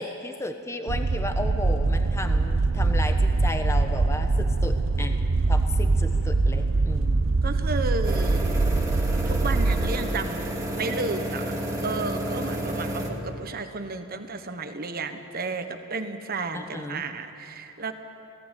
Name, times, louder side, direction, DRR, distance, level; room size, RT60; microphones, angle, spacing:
voice 1, 0.0-5.2 5.5-7.1 16.5-17.0, left 1 dB, 15° left, 6 dB, 1.1 m, -34 dB
sound 1, 0.9-9.9, right 3 dB, 70° right, 0.7 m, -23 dB
voice 2, 7.4-8.5 9.2-11.6 11.8-17.9, right 3 dB, 50° right, 8 dB, 1.2 m, -32 dB
sound 2, 8.0-13.1, right 1 dB, 15° right, 2.3 m, -31 dB
18.0 x 17.0 x 9.1 m, 2.7 s
head